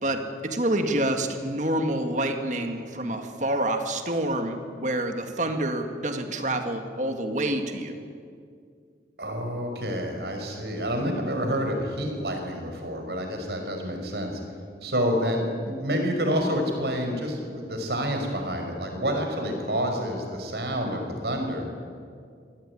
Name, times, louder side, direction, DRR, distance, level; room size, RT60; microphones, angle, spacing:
voice 1, 0.0-8.0, right 1 dB, 45° right, 6 dB, 2.0 m, -27 dB
voice 2, 9.2-14.3 14.8-21.7, equal, 70° right, 3 dB, 5.5 m, -28 dB
25.5 x 17.5 x 9.8 m, 2.2 s
head